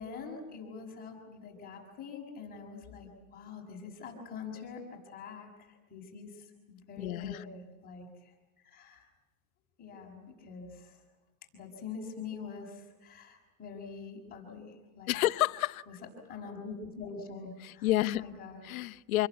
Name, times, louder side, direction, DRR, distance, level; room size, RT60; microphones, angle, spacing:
voice 1, 0.0-8.3 8.6-9.1 9.8-11.0 11.5-15.2 16.3-18.6, left 5 dB, 20° left, 6.1 m, -45 dB
voice 2, 7.0-7.4 15.1-15.8 17.6-18.2 18.6-19.3, left 16 dB, 75° left, 1.0 m, -29 dB
28.0 x 21.5 x 9.4 m
supercardioid pair, 160°, 42 cm